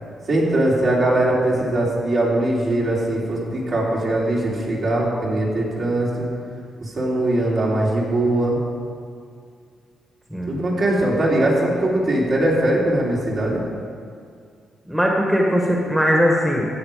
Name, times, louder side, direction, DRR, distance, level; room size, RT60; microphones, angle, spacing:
voice 1, 0.3-6.3 6.8-8.6 10.5-13.6, right 1 dB, 55° right, -5 dB, 3.3 m, -21 dB
voice 2, 14.9-16.7, equal, 5° right, -2 dB, 1.5 m, -19 dB
14.5 x 8.5 x 5.1 m, 2.2 s
cardioid pair, 105°, 0 cm